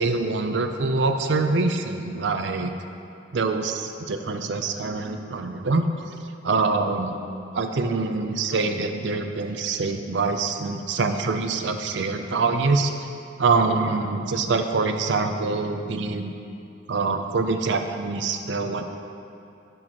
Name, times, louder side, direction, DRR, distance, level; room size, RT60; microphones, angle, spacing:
voice 1, 0.0-2.7 3.3-5.8 6.4-7.1 7.6-12.9 13.4-16.3 16.9-18.8, right 3 dB, 75° right, 6 dB, 0.5 m, -25 dB
11.0 x 6.1 x 3.0 m, 2.6 s
head